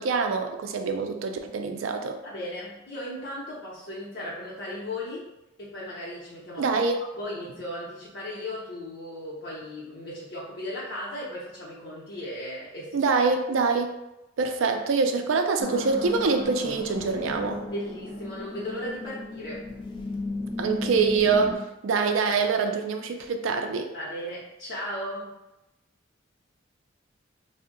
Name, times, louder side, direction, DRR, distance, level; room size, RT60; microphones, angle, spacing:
voice 1, 0.0-2.2 6.6-7.0 12.9-14.0 14.4-17.6 20.6-23.9, right 4 dB, 75° right, 5 dB, 0.4 m, -25 dB
voice 2, 2.2-5.3 5.6-6.8 7.1-13.0 17.7-19.7 23.9-25.3, left 1 dB, 60° left, -7 dB, 0.7 m, -36 dB
sound 1, 15.6-21.6, left 2 dB, 25° left, 0.4 m, -35 dB
2.6 x 2.1 x 3.7 m, 0.92 s
head